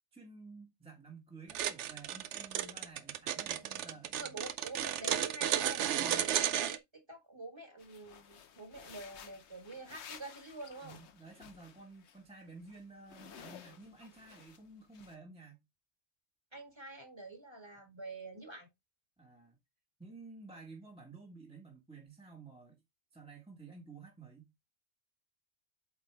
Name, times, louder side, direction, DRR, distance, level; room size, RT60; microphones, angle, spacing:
voice 1, 0.1-4.3 6.0-6.3 10.8-15.6 19.2-19.6 20.0-22.8 23.1-24.5, right 4 dB, 5° right, 1.3 m, -53 dB
sound 1, 1.5-6.8, right 10 dB, 75° right, 0.9 m, -33 dB
voice 2, 3.5-11.0 16.5-18.7, right 2 dB, 20° right, 1.8 m, -48 dB
sound 2, 7.8-12.2 12.5-14.6 14.9-15.1, left 7 dB, 70° left, 1.1 m, -54 dB
8.0 x 4.2 x 3.4 m
omnidirectional pair, 1.2 m